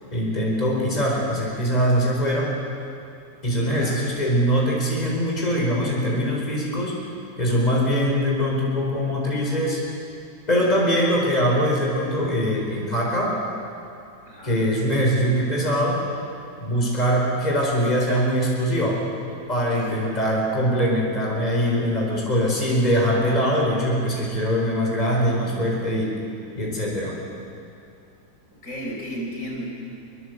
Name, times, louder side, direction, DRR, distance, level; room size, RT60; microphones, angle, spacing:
voice 1, 0.1-2.5 3.4-7.0 7.4-9.8 10.5-13.4 14.4-16.0 16.6-19.1 19.5-26.2 26.5-27.2, equal, 25° left, -2 dB, 4.6 m, -22 dB
voice 2, 14.3-14.6 19.6-19.9 28.6-29.7, equal, 50° left, -1 dB, 5.1 m, -33 dB
24.5 x 23.5 x 8.0 m, 2.5 s
omnidirectional pair, 1.8 m